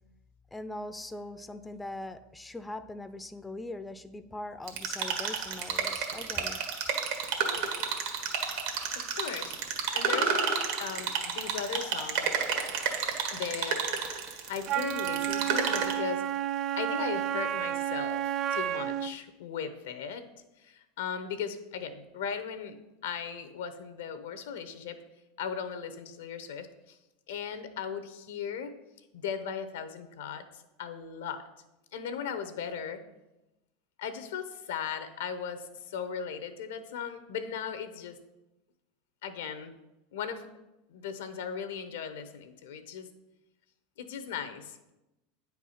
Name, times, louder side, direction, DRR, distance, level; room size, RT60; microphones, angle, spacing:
voice 1, 0.5-6.6, left 2 dB, 10° left, 10 dB, 0.5 m, -41 dB
sound 1, 4.7-15.9, right 6 dB, 75° right, 1.6 m, -31 dB
voice 2, 8.9-9.6 9.9-10.4 10.8-12.3 13.3-14.1 14.5-16.3 16.8-20.3 20.6-22.8 23.0-25.0 25.4-27.0 27.3-28.7 29.1-31.4 31.9-33.0 34.0-38.2 39.2-39.7 40.1-40.5 40.9-43.1 44.0-44.9, left 7 dB, 80° left, 10 dB, 0.9 m, -37 dB
Wind instrument woodwind instrument, 14.7-19.2, right 11 dB, 55° right, 0.4 m, -31 dB
9.0 x 4.7 x 5.7 m, 0.98 s
hypercardioid pair, 105°, 0 cm